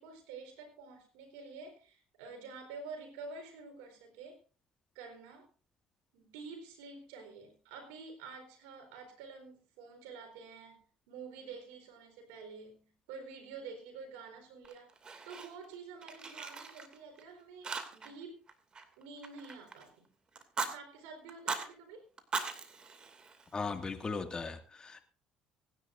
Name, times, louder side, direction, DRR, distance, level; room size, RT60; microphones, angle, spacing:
voice 1, 0.0-4.4 4.9-5.5 6.1-10.8 11.1-14.9 15.2-18.4 19.0-20.1 20.6-22.0, right 4 dB, 85° right, 6 dB, 4.2 m, -49 dB
Fire, 14.6-15.7 16.0-17.2 17.6-18.2 18.5-19.9 20.4-20.7 21.3-21.7 22.2-23.8, right 4 dB, 35° right, 2.5 m, -40 dB
voice 2, 23.5-25.0, left 4 dB, 30° left, 7 dB, 2.1 m, -38 dB
24.5 x 10.5 x 2.6 m, 0.35 s
supercardioid pair, 70°, 3 cm